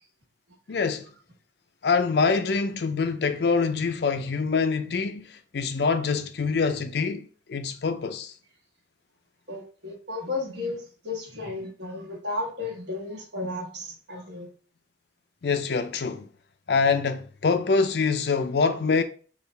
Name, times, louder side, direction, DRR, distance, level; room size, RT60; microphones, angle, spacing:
voice 1, 0.7-1.0 1.8-8.3 15.4-16.3 16.7-19.0, left 4 dB, 65° left, 0.4 m, -25 dB
voice 2, 9.5-14.5, left 2 dB, 75° right, 1.5 m, -34 dB
4.6 x 2.5 x 3.2 m
head